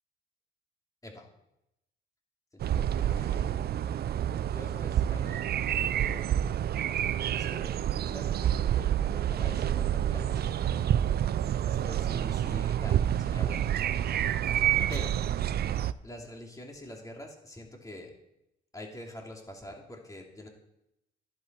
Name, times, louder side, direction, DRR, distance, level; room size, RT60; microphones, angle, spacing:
voice 1, 2.5-3.6 4.5-6.3 7.3-7.8 8.0-10.5 11.6-13.7 14.9-15.1 16.0-18.1 18.7-20.5, left 1 dB, 15° left, 1 dB, 2.8 m, -45 dB
sound 1, 2.6-15.9, right 10 dB, 55° right, 0.5 m, -28 dB
11.0 x 11.0 x 4.5 m, 0.85 s
cardioid pair, 90°, 20 cm